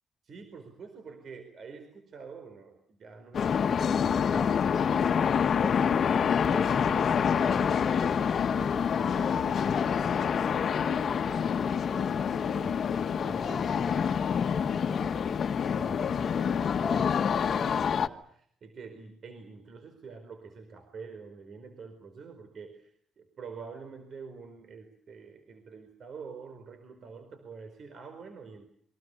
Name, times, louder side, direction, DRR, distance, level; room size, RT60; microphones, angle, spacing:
voice 1, 0.2-6.1 6.4-8.2 8.5-12.9 13.2-15.5 15.8-28.7, right 5 dB, 55° right, 8 dB, 4.5 m, -47 dB
sound 1, 3.3-18.1, left 7 dB, 55° left, 1.4 m, -27 dB
27.5 x 24.0 x 7.0 m, 0.65 s
cardioid pair, 90°, 0 cm